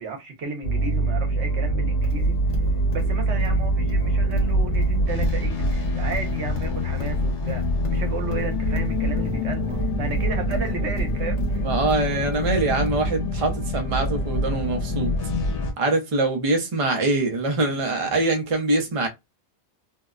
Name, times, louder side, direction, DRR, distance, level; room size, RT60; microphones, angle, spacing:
voice 1, 0.0-2.4 2.9-9.6 10.0-11.6, right 4 dB, 75° right, 1.1 m, -33 dB
sound 1, 0.6-15.7, equal, 75° left, 1.1 m, -24 dB
Livestock farm animals working animals, 2.0-12.9, right 1 dB, 40° left, 0.8 m, -35 dB
voice 2, 11.6-15.1 15.8-19.1, right 2 dB, 35° right, 0.6 m, -24 dB
2.7 x 2.1 x 2.3 m
omnidirectional pair, 1.2 m